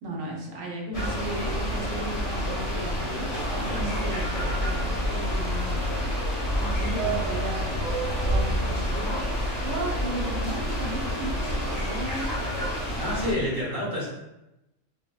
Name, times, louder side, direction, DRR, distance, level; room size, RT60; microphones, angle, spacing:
voice 1, 0.0-5.8 6.6-7.7 8.0-9.2 9.6-12.4, right 2 dB, 80° right, -1 dB, 1.0 m, -35 dB
sound 1, 0.9-13.3, left 1 dB, 35° left, 0.7 m, -29 dB
Subway metro underground, 1.1-13.5, right 3 dB, 35° right, 0.7 m, -37 dB
voice 2, 13.0-14.1, left 1 dB, 15° right, -9 dB, 1.3 m, -29 dB
3.4 x 2.3 x 2.2 m, 0.91 s
omnidirectional pair, 1.3 m